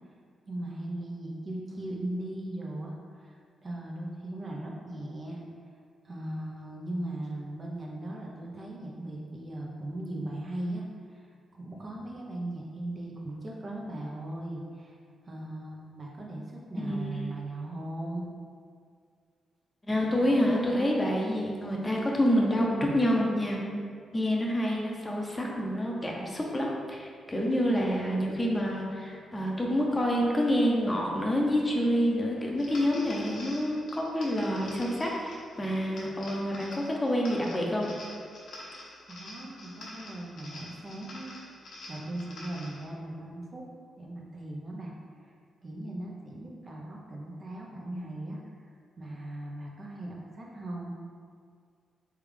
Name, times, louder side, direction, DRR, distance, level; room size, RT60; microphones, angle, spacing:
voice 1, 0.5-5.4 6.0-15.0 15.3-18.2 39.1-41.3 41.9-43.6 44.0-44.9 45.6-48.4 49.0-50.9, right 1 dB, 45° right, -2 dB, 0.8 m, -38 dB
voice 2, 19.9-23.6 24.1-37.9, equal, 20° left, -2 dB, 0.8 m, -27 dB
sound 1, 32.6-42.8, left 1 dB, 70° left, 1.0 m, -46 dB
3.5 x 3.5 x 3.3 m, 2.1 s
supercardioid pair, 50°, 0 cm